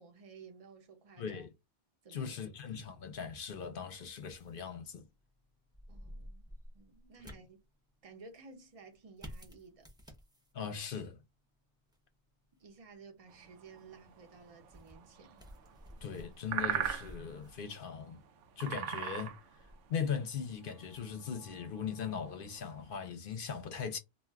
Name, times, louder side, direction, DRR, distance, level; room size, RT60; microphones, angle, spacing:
voice 1, 0.0-1.4 2.0-2.6 5.9-6.5 6.7-7.6 8.0-9.9 12.6-15.4, right 4 dB, 35° right, 0.8 m, -55 dB
voice 2, 1.2-1.5 2.1-5.0 7.2-7.3 10.5-11.2 16.0-18.2 18.6-19.4 19.9-24.0, left 7 dB, 55° left, 0.7 m, -39 dB
sound 1, 2.7-20.7, equal, 5° right, 0.5 m, -56 dB
sound 2, 13.3-22.9, right 9 dB, 90° right, 0.9 m, -42 dB
2.5 x 2.4 x 3.2 m
omnidirectional pair, 1.2 m